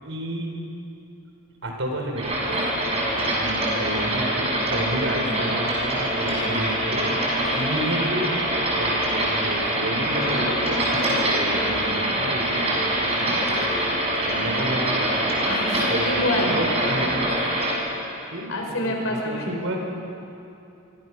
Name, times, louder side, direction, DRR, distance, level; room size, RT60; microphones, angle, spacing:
voice 1, 0.0-0.5 1.6-2.6 2.9-7.2 7.5-8.3 8.7-13.9 14.3-15.2 15.9-17.2 18.3-18.5 18.8-19.8, right 1 dB, 65° right, 1 dB, 4.9 m, -31 dB
sound 1, 2.2-17.7, right 1 dB, 30° right, 6.0 m, -24 dB
voice 2, 15.4-16.5 18.5-19.5, left 1 dB, 70° left, 1 dB, 4.7 m, -27 dB
26.0 x 24.0 x 6.3 m, 2.8 s
head